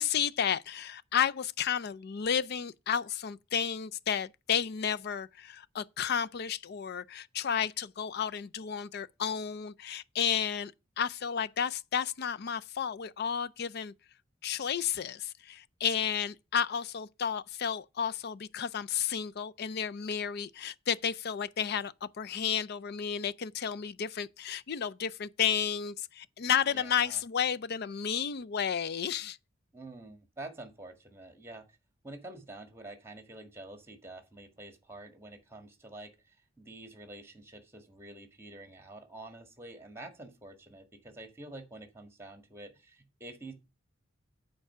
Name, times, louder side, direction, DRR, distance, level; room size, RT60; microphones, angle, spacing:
voice 1, 0.0-10.7 11.0-13.9 14.4-29.4, left 8 dB, 55° left, 0.4 m, -32 dB
voice 2, 26.6-27.2 29.7-31.8 32.0-43.5, right 2 dB, 15° right, 1.7 m, -48 dB
9.0 x 4.6 x 6.6 m
head